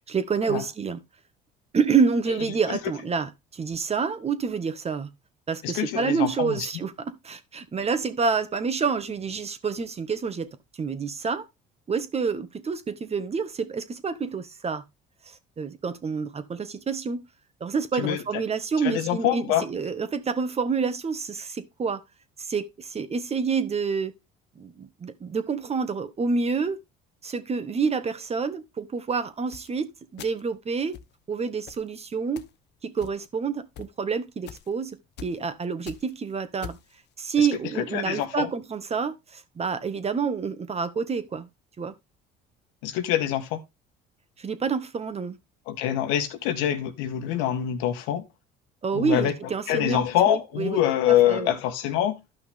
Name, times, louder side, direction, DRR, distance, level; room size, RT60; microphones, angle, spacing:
voice 1, 0.1-1.0 1.7-5.1 5.5-10.5 10.8-11.4 11.9-14.8 15.6-17.2 17.6-22.0 22.4-24.1 24.5-26.8 27.2-31.0 31.3-32.4 32.8-36.8 37.2-41.5 41.8-41.9 44.4-45.4 48.8-51.5, right 5 dB, 30° right, 1.7 m, -28 dB
voice 2, 5.6-6.7 18.0-18.2 18.8-19.6 37.4-37.5 37.8-38.5 42.8-43.6 45.7-48.2 48.9-49.3 49.7-52.2, left 11 dB, 85° left, 1.7 m, -25 dB
sound 1, 29.5-29.7 30.2-30.5 30.9-31.1 31.7-31.9 32.4-32.6 33.0-33.4 33.7-33.9 34.5-34.7 35.2-35.4 35.7-36.1 36.6-36.9, left 9 dB, 60° left, 1.1 m, -42 dB
12.5 x 5.8 x 3.6 m
supercardioid pair, 90°, 20 cm